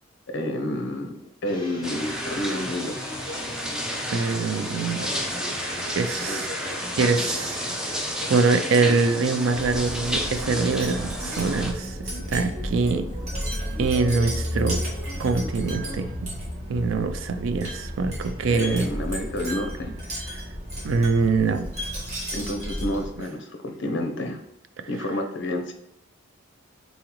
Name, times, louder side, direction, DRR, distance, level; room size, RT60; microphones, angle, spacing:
voice 1, 0.3-1.1 1.4-3.0 6.2-6.4 18.5-19.9 22.3-24.4 24.9-25.7, left 1 dB, 55° left, 5 dB, 0.6 m, -29 dB
sound 1, 1.4-16.1, equal, 20° left, 1.2 m, -39 dB
sound 2, 1.8-11.7, equal, 5° right, 0.4 m, -31 dB
voice 2, 4.1-5.1 5.9-6.5 6.9-13.0 13.8-14.8 15.2-16.1 16.7-18.9 20.8-21.7, right 4 dB, 65° right, 9 dB, 0.4 m, -24 dB
Wind chime, 9.5-23.2, equal, 35° right, 1.5 m, -33 dB
4.0 x 3.7 x 3.0 m, 0.85 s
head